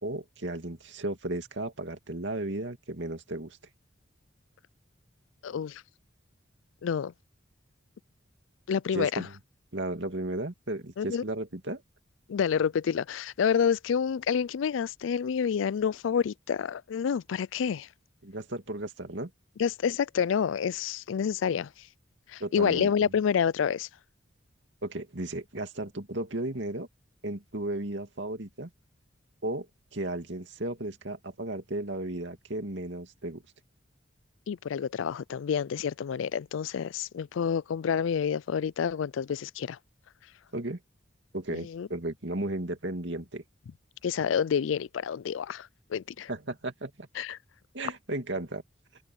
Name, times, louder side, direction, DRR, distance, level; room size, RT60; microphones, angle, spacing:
voice 1, 0.0-3.6 8.9-9.3 9.7-11.8 18.2-19.3 22.4-23.1 24.8-26.9 27.2-28.7 29.4-29.7 29.9-33.4 40.5-40.8 41.3-43.4 46.3-47.1 47.7-48.6, right 1 dB, 70° right, 2.5 m, -34 dB
voice 2, 5.4-5.8 6.8-7.1 8.7-9.3 11.0-11.2 12.3-17.9 19.6-21.7 22.3-23.9 34.5-39.8 41.5-41.9 44.0-46.3 47.2-47.4, left 7 dB, 85° left, 0.4 m, -28 dB
head